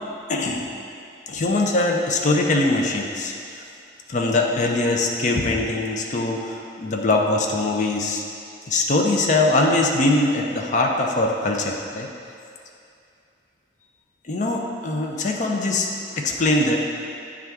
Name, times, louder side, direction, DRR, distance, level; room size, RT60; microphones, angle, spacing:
voice 1, 0.3-0.6 1.3-3.6 4.1-8.2 8.7-12.1 14.3-16.8, left 2 dB, 45° left, 0 dB, 0.5 m, -22 dB
8.9 x 3.5 x 3.5 m, 2.5 s
head